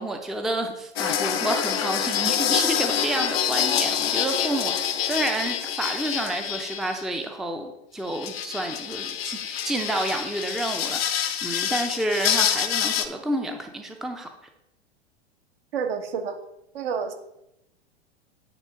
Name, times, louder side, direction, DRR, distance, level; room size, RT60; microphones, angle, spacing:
voice 1, 0.0-14.3, right 1 dB, ahead, 5 dB, 0.5 m, -29 dB
sound 1, 1.0-7.0 8.1-13.1, left 9 dB, 65° left, 0.8 m, -26 dB
voice 2, 15.7-16.4 16.7-17.1, right 6 dB, 60° right, 6 dB, 1.1 m, -28 dB
9.2 x 3.6 x 5.3 m, 0.84 s
figure-of-eight pair, 90°, 33 cm